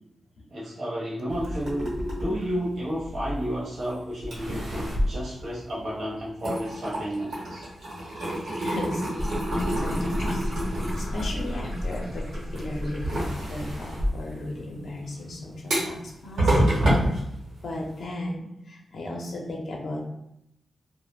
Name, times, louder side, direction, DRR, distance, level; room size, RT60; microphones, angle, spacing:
voice 1, 0.5-7.7, equal, 45° right, -7 dB, 0.7 m, -32 dB
sound 1, 1.3-3.8 4.2-6.0 6.3-18.0, equal, 80° right, 0.9 m, -29 dB
voice 2, 8.6-9.3 9.7-17.1 17.6-20.0, left 1 dB, 65° left, -1 dB, 0.5 m, -36 dB
sound 2, 9.2-13.5, left 1 dB, 5° right, 0.5 m, -32 dB
2.4 x 2.0 x 3.2 m, 0.79 s
wide cardioid pair, 130°, 0 cm